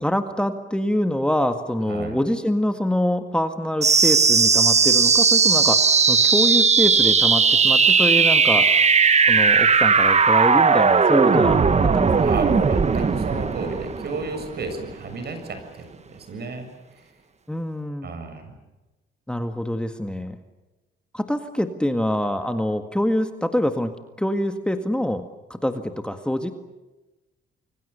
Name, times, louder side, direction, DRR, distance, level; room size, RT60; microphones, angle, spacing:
voice 1, 0.0-8.7 9.3-12.3 17.5-18.1 19.3-20.4 21.1-23.9 24.2-25.2 25.5-26.5, left 1 dB, 5° left, 7 dB, 1.8 m, -25 dB
voice 2, 1.9-2.2 12.2-16.7 17.0-17.1 18.0-18.5, right 3 dB, 55° right, 7 dB, 7.3 m, -32 dB
sound 1, 3.8-14.8, right 5 dB, 35° right, 1.5 m, -17 dB
29.5 x 23.5 x 7.0 m, 1.1 s
cardioid pair, 90°, 20 cm